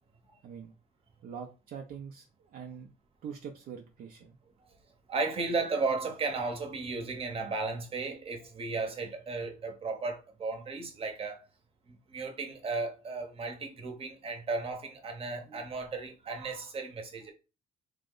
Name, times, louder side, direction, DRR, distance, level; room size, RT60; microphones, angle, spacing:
voice 1, 1.2-2.9 3.2-4.4, right 7 dB, 60° right, 0.5 m, -44 dB
voice 2, 5.1-11.4 12.1-17.3, right 3 dB, 35° right, 0.8 m, -34 dB
3.0 x 2.0 x 3.7 m
cardioid pair, 110°, 17 cm